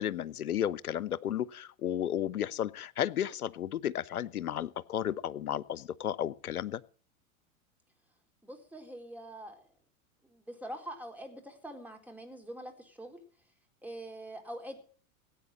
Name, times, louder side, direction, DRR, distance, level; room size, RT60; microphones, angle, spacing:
voice 1, 0.0-6.8, left 10 dB, 85° left, 21 dB, 0.8 m, -33 dB
voice 2, 8.4-9.6 10.2-13.2 13.8-14.8, right 1 dB, 5° right, 4 dB, 4.3 m, -44 dB
17.5 x 9.0 x 7.6 m, 0.42 s
hypercardioid pair, 95°, 43 cm